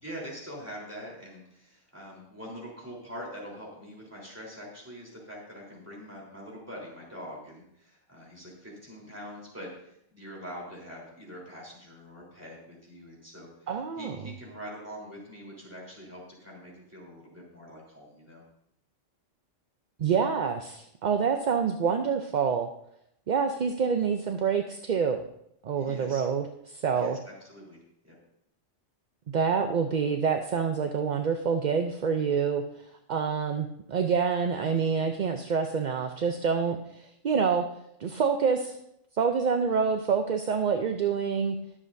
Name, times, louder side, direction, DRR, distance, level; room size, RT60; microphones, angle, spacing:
voice 1, 0.0-13.7 14.0-18.4 25.7-26.2 26.9-27.8 28.0-28.2, equal, 10° right, -4 dB, 3.6 m, -44 dB
voice 2, 13.7-14.3 20.0-22.7 23.3-25.2 25.6-27.2 29.3-37.6 38.0-38.8 39.2-41.6, right 6 dB, 50° right, 5 dB, 0.6 m, -27 dB
21.0 x 7.5 x 2.6 m, 0.75 s
omnidirectional pair, 1.3 m